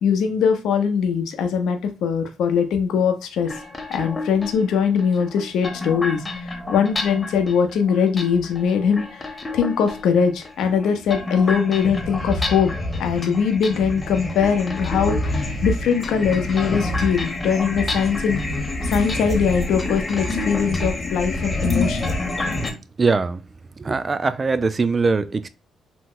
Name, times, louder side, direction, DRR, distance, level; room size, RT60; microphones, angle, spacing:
voice 1, 0.0-3.5 3.9-9.3 9.5-12.7 13.0-18.4 18.8-22.2, left 6 dB, 80° left, 0.6 m, -21 dB
sound 1, 3.4-22.7, left 2 dB, 25° left, 0.8 m, -28 dB
voice 2, 23.0-23.4 23.8-25.5, right 4 dB, 30° right, 0.3 m, -21 dB
2.9 x 2.0 x 3.6 m
cardioid pair, 85°, 0 cm